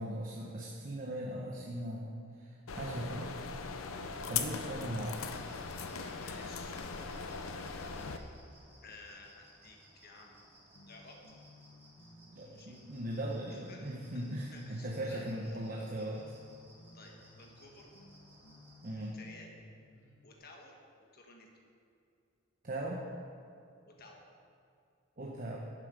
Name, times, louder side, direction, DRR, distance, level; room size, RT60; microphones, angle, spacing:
voice 1, 0.0-3.3 4.3-5.3 12.3-16.2 18.8-19.2 22.6-23.0 25.2-25.6, right 1 dB, 45° right, -2 dB, 1.0 m, -39 dB
sound 1, 2.7-8.2, left 5 dB, 85° left, 0.7 m, -39 dB
sound 2, 5.1-19.1, right 1 dB, 10° right, 2.7 m, -61 dB
voice 2, 6.1-6.7 8.8-10.4 10.9-11.2 12.4-12.8 13.7-13.9 14.1-14.2 14.5-15.6 16.2-16.4 16.9-17.9 18.9-19.5 20.2-21.5 23.9-24.2, left 3 dB, 50° left, 1 dB, 1.4 m, -54 dB
sound 3, 10.8-20.4, left 1 dB, 65° left, 1.2 m, -59 dB
11.5 x 8.2 x 5.2 m, 2.5 s
head